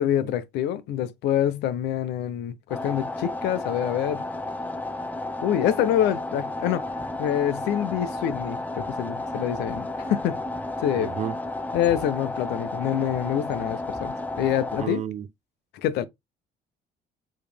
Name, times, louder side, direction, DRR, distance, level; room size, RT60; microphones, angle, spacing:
voice 1, 0.0-4.2 5.4-6.8 7.2-10.4 10.8-11.1 11.7-15.0 15.8-16.1, left 10 dB, 85° left, 0.7 m, -26 dB
sound 1, 2.7-14.9, left 2 dB, 10° left, 0.7 m, -32 dB
voice 2, 10.9-11.4 14.8-15.3, right 9 dB, 45° right, 0.5 m, -31 dB
4.8 x 3.1 x 3.4 m
cardioid pair, 110°, 17 cm